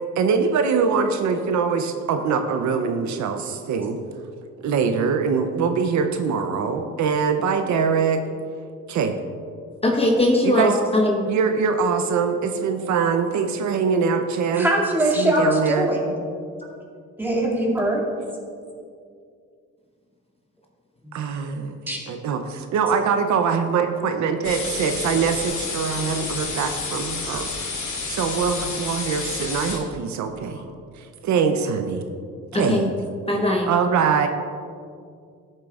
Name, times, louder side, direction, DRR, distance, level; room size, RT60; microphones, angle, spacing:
voice 1, 0.2-4.0 4.6-8.2 8.9-9.1 10.4-10.8 11.3-14.7 15.1-15.9 21.1-21.8 22.1-27.5 27.8-30.6 31.0-32.0 32.5-33.0 33.5-34.3, right 6 dB, 70° right, 6 dB, 0.6 m, -23 dB
voice 2, 9.8-11.2 16.7-16.8 32.5-32.8 33.3-33.7, left 1 dB, 20° left, 0 dB, 1.0 m, -20 dB
voice 3, 14.5-16.1 17.2-18.0 21.0-21.4 21.9-22.0 22.3-22.4 32.5-32.6, right 1 dB, 5° right, -4 dB, 2.3 m, -22 dB
sound 1, 24.4-29.8, left 4 dB, 70° left, 1.9 m, -30 dB
13.0 x 7.5 x 2.4 m, 2.2 s
cardioid pair, 90°, 30 cm